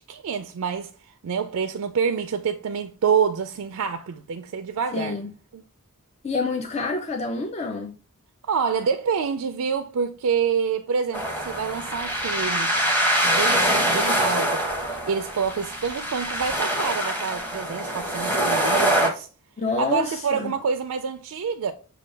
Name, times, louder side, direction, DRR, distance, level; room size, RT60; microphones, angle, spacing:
voice 1, 0.1-0.9 1.2-5.2 8.5-12.7 13.2-19.3 19.8-21.7, right 6 dB, 75° right, 0.4 m, -27 dB
voice 2, 4.9-5.3 6.2-8.0 19.6-20.6, left 3 dB, 30° left, 0.4 m, -28 dB
sound 1, 11.1-19.1, equal, 10° left, 1.0 m, -24 dB
6.5 x 2.3 x 3.3 m
head